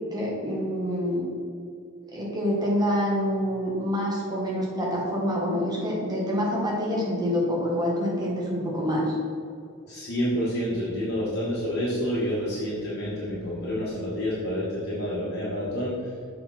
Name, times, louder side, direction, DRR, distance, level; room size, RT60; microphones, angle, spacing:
voice 1, 0.1-1.3 2.1-9.2, equal, 20° right, -4 dB, 1.5 m, -26 dB
voice 2, 9.8-15.9, equal, 50° left, -8 dB, 1.5 m, -28 dB
6.7 x 4.5 x 4.2 m, 2.5 s
head